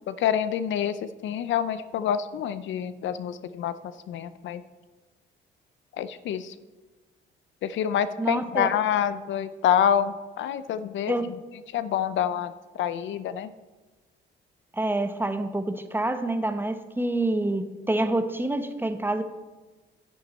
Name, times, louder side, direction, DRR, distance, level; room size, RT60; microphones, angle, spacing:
voice 1, 0.1-3.7 4.1-4.6 6.0-6.5 7.6-11.3 11.7-13.5, left 9 dB, 70° left, 14 dB, 0.5 m, -27 dB
voice 2, 8.2-8.7 11.1-11.3 14.7-19.2, right 2 dB, 10° right, 9 dB, 0.8 m, -27 dB
10.0 x 8.7 x 4.3 m, 1.2 s
cardioid pair, 90°, 20 cm